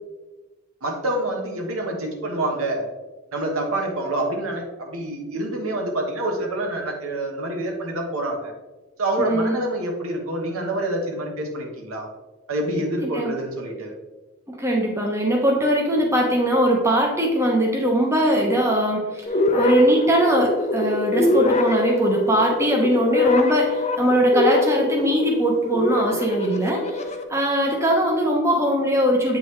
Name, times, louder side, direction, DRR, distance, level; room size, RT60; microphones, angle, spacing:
voice 1, 0.8-2.8 3.3-8.5 9.0-12.1 12.5-13.9, right 1 dB, 85° right, 1 dB, 1.2 m, -27 dB
voice 2, 9.2-9.6 13.0-13.3 14.5-27.0 27.3-29.4, right 1 dB, 15° right, 0 dB, 0.8 m, -21 dB
sound 1, 19.3-27.2, left 3 dB, 30° left, 0.5 m, -24 dB
8.3 x 3.8 x 3.2 m, 1.2 s
head